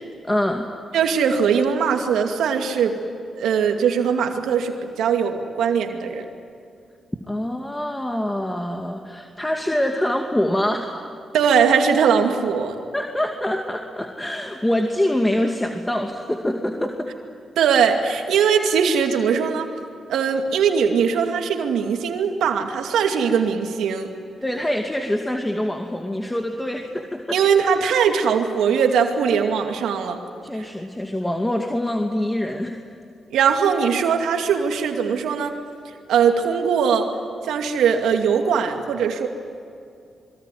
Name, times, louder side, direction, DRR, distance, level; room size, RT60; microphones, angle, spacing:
voice 1, 0.2-0.7 7.3-11.0 12.9-17.1 24.4-27.4 30.4-32.7, left 1 dB, 10° left, 3 dB, 2.4 m, -25 dB
voice 2, 0.9-3.0 3.4-6.3 11.3-12.8 17.6-19.7 20.1-24.1 27.3-30.2 33.3-35.5 36.1-37.1 37.4-39.3, right 6 dB, 80° right, 4 dB, 2.4 m, -20 dB
27.5 x 23.0 x 9.4 m, 2.4 s
supercardioid pair, 50°, 0 cm